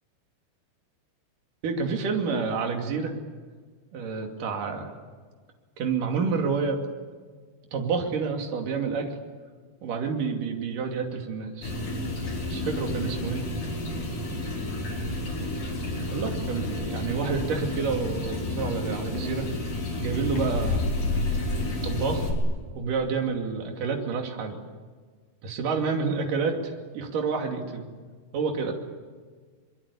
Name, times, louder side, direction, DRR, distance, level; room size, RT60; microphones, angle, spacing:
voice 1, 1.6-3.1 3.9-4.9 5.8-6.8 7.7-9.2 9.8-11.7 12.5-13.4 16.1-19.5 20.0-20.8 21.8-22.3 22.7-24.6 25.4-27.9 28.3-28.7, right 5 dB, 60° right, 3 dB, 4.1 m, -29 dB
sound 1, 11.6-22.3, left 2 dB, 65° left, 6.4 m, -30 dB
25.5 x 22.0 x 8.5 m, 1.5 s
omnidirectional pair, 4.4 m